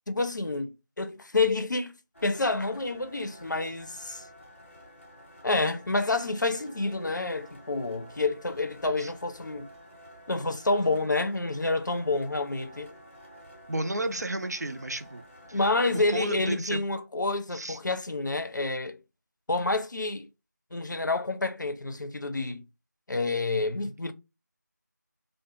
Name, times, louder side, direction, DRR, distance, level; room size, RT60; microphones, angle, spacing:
voice 1, 0.1-1.9 2.2-4.2 5.4-9.7 10.3-12.9 15.5-19.0 19.5-20.3 20.7-22.6 23.1-24.1, left 3 dB, 85° left, 0.5 m, -28 dB
sound 1, 2.1-16.6, equal, 45° left, 0.7 m, -51 dB
voice 2, 13.7-15.6 15.9-16.8 17.5-17.8, right 1 dB, 60° right, 0.4 m, -33 dB
2.4 x 2.1 x 2.8 m
figure-of-eight pair, 175°, 10 cm